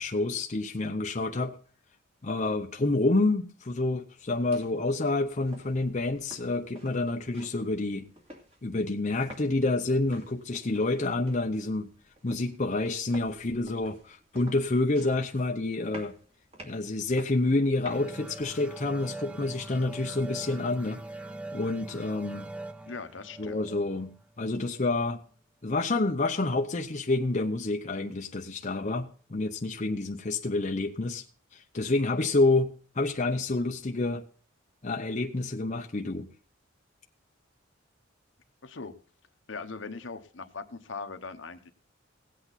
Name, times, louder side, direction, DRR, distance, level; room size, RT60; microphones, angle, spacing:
voice 1, 0.0-1.5 2.2-8.1 8.6-11.9 12.2-16.1 16.6-21.0 21.5-22.5 23.4-25.2 25.6-31.2 31.5-34.2 34.8-36.3, left 2 dB, 35° left, 3 dB, 0.7 m, -28 dB
sound 1, 4.2-18.4, right 1 dB, 30° right, 2.5 m, -52 dB
sound 2, 17.9-25.2, right 2 dB, 5° right, 0.4 m, -42 dB
voice 2, 22.9-23.6 38.6-38.9 39.5-41.7, left 4 dB, 65° left, 9 dB, 1.0 m, -40 dB
17.0 x 8.2 x 4.1 m, 0.41 s
head